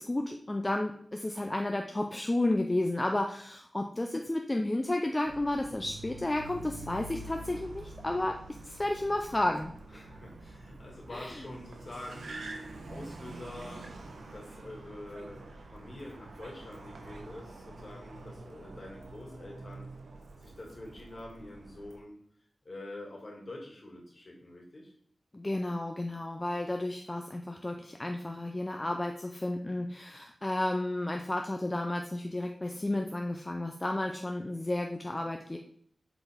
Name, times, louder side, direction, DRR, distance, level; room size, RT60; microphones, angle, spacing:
voice 1, 0.0-8.4 8.6-10.1 11.1-11.4 25.3-35.6, left 1 dB, 25° left, 3 dB, 0.5 m, -32 dB
Car, 5.2-22.0, right 2 dB, 90° right, 0.9 m, -46 dB
voice 2, 9.9-13.9 14.3-15.4 15.7-19.9 20.4-22.2 22.6-24.9, left 1 dB, 50° left, -1 dB, 2.3 m, -46 dB
7.9 x 4.1 x 3.5 m, 0.64 s
wide cardioid pair, 65°, 0 cm